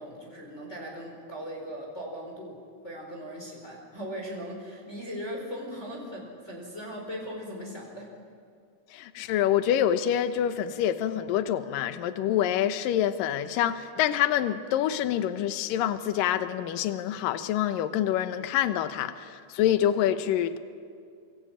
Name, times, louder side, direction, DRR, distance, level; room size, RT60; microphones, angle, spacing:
voice 1, 0.0-8.1, equal, 15° left, -1 dB, 4.9 m, -39 dB
voice 2, 8.9-20.6, left 11 dB, 70° left, 11 dB, 2.6 m, -26 dB
27.0 x 24.5 x 8.9 m, 2.2 s
omnidirectional pair, 4.5 m